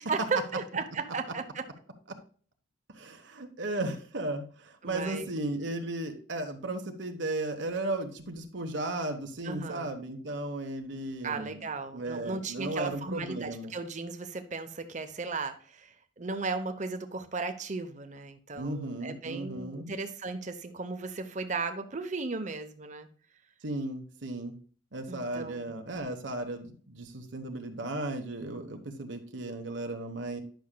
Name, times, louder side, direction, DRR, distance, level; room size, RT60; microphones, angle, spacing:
voice 1, 0.1-1.7 4.8-5.3 9.4-9.9 11.2-23.1 25.1-25.7, right 4 dB, 40° right, 8 dB, 0.8 m, -36 dB
voice 2, 2.9-11.6 11.9-13.7 18.6-19.9 23.6-24.5 24.9-30.4, right 2 dB, 70° right, 4 dB, 1.1 m, -35 dB
10.5 x 6.2 x 2.2 m, 0.44 s
head